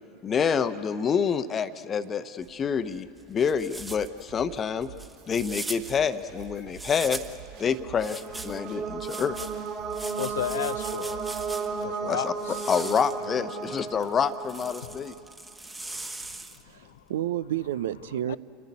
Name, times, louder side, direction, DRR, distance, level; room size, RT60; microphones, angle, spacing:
voice 1, 0.2-4.9 5.3-7.2 7.6-9.4 12.1-15.1, left 6 dB, 30° left, 12 dB, 0.9 m, -27 dB
sound 1, 2.4-7.5 8.0-11.9 12.3-16.8, right 2 dB, 10° right, 1.4 m, -41 dB
sound 2, 3.8-11.8, right 9 dB, 50° right, 1.5 m, -48 dB
sound 3, 7.5-15.3, right 5 dB, 35° right, 3.4 m, -34 dB
voice 2, 10.2-11.2 11.8-12.5 16.7-17.0 18.3-18.4, left 12 dB, 70° left, 18 dB, 0.5 m, -33 dB
voice 3, 16.6-18.4, right 12 dB, 70° right, 16 dB, 0.6 m, -30 dB
29.5 x 10.5 x 9.5 m, 2.7 s
figure-of-eight pair, 80°, 0 cm